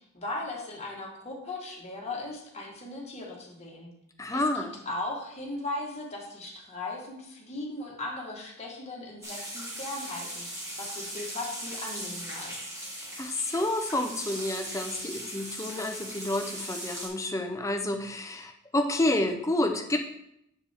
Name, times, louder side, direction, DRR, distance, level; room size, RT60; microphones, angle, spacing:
voice 1, 0.1-3.9 4.3-12.6, left 2 dB, 30° left, -2 dB, 1.5 m, -38 dB
voice 2, 4.2-4.7 13.2-20.0, left 1 dB, 15° left, 5 dB, 0.6 m, -29 dB
sound 1, 9.2-17.1, right 1 dB, 15° right, 1.4 m, -39 dB
7.2 x 6.8 x 3.5 m, 0.78 s
head